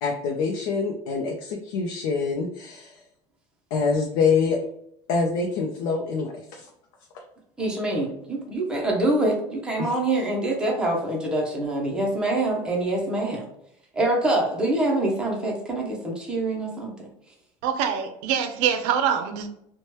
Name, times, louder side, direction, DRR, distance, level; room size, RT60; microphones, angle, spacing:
voice 1, 0.0-3.0 3.7-4.6 5.1-6.7 9.8-9.9, left 4 dB, 85° left, 0 dB, 0.5 m, -25 dB
voice 2, 7.6-13.5 13.9-17.0, right 2 dB, 5° right, -1 dB, 0.6 m, -25 dB
voice 3, 17.6-19.5, right 8 dB, 70° right, 8 dB, 0.5 m, -24 dB
2.9 x 2.1 x 3.0 m, 0.76 s
cardioid pair, 170°, 12 cm